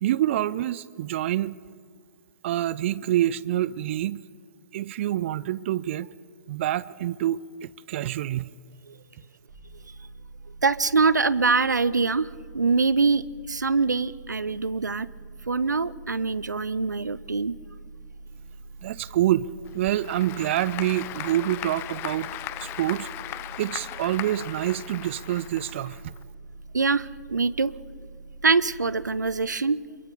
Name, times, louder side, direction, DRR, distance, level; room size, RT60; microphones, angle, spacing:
voice 1, 0.0-1.5 2.4-4.2 4.7-6.1 6.5-8.5 18.8-19.5 19.7-22.3 22.6-23.1 23.6-26.1, right 13 dB, 45° right, 0.5 m, -26 dB
sound 1, 9.5-29.2, right 3 dB, 65° right, 7.7 m, -45 dB
voice 2, 10.6-12.3 12.5-15.1 15.5-17.6 26.7-27.7 28.4-29.8, right 4 dB, 80° right, 0.7 m, -24 dB
Applause / Crowd, 19.6-26.2, left 14 dB, 25° left, 0.7 m, -38 dB
27.5 x 22.5 x 5.0 m
figure-of-eight pair, 115°, 10 cm